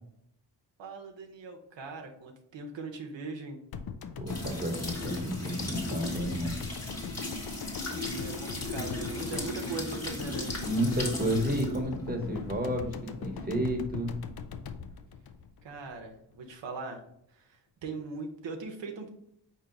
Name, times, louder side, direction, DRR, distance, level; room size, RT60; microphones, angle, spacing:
voice 1, 0.8-3.6 6.0-6.1 8.2-10.5 15.6-17.0 17.3-19.1, right 3 dB, 85° right, 2 dB, 0.7 m, -40 dB
sound 1, 3.7-16.1 16.3-16.4, left 6 dB, 60° left, 0.5 m, -40 dB
voice 2, 4.2-6.6 10.7-14.2, right 1 dB, 20° right, 2 dB, 1.0 m, -31 dB
sound 2, 4.3-13.9, left 1 dB, 35° left, 1.3 m, -38 dB
4.5 x 2.8 x 3.8 m, 0.74 s
cardioid pair, 60°, 43 cm